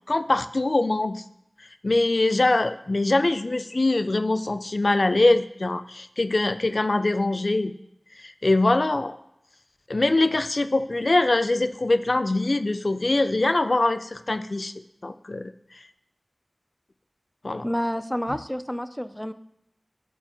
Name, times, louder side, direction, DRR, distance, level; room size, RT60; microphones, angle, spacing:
voice 1, 0.1-1.2 1.8-7.7 8.2-9.2 9.9-14.7 15.0-15.5 17.4-17.7, left 2 dB, 65° left, 11 dB, 0.4 m, -23 dB
voice 2, 17.6-19.3, equal, 10° left, 12 dB, 0.5 m, -29 dB
12.0 x 8.0 x 3.0 m, 0.78 s
wide cardioid pair, 40°, 0 cm